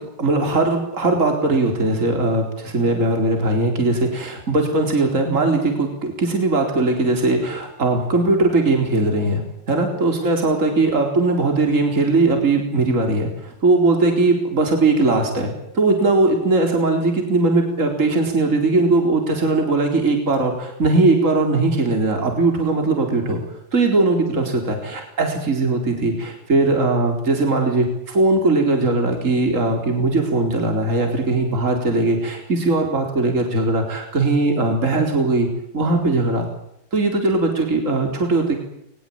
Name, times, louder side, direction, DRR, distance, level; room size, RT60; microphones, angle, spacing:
voice 1, 0.2-9.4 9.7-23.4 23.7-35.5 35.7-36.5 36.9-38.6, right 2 dB, 35° right, 4 dB, 4.6 m, -19 dB
22.0 x 21.5 x 8.8 m, 0.76 s
omnidirectional pair, 2.2 m